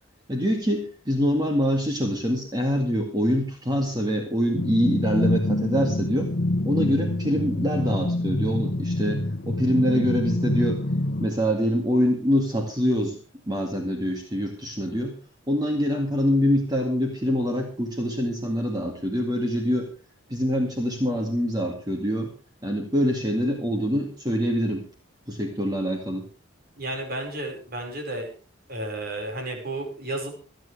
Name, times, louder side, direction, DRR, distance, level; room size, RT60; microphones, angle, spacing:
voice 1, 0.3-6.3 6.6-10.8 11.2-13.2 13.5-15.1 15.5-19.9 20.3-22.3 22.6-24.8 25.3-26.2, equal, 20° right, 2 dB, 2.1 m, -25 dB
sound 1, 4.6-11.3, left 1 dB, 55° left, 1.0 m, -26 dB
voice 2, 26.8-28.3 28.7-30.3, right 1 dB, 50° right, 2 dB, 5.2 m, -32 dB
27.5 x 9.4 x 3.4 m, 0.34 s
head